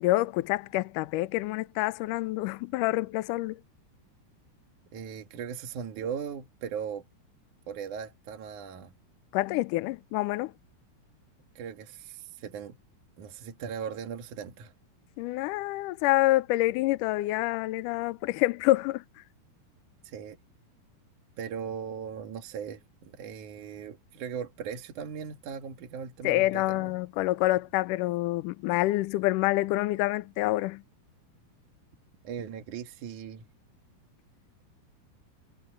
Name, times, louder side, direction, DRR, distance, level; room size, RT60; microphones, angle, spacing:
voice 1, 0.0-3.6 9.3-10.5 15.2-19.0 26.2-30.8, left 18 dB, 85° left, 1.8 m, -27 dB
voice 2, 4.9-7.0 7.7-8.9 11.5-12.8 13.2-14.7 20.0-20.4 21.4-26.9 32.2-33.4, right 7 dB, 55° right, 2.9 m, -38 dB
omnidirectional pair, 4.6 m